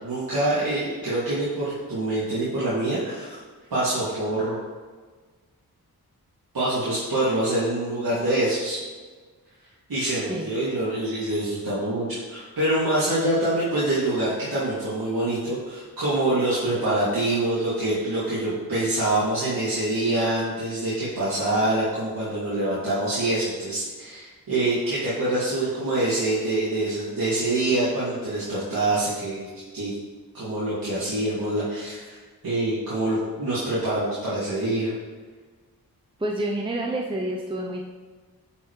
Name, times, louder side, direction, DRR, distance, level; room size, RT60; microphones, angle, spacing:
voice 1, 0.0-3.4 3.7-4.5 6.5-8.8 9.9-29.5 29.7-29.9 30.3-34.9, right 1 dB, 70° right, -11 dB, 2.6 m, -25 dB
voice 2, 36.2-37.9, right 1 dB, 15° right, -1 dB, 0.7 m, -28 dB
9.9 x 5.7 x 3.3 m, 1.4 s
wide cardioid pair, 90°, 37 cm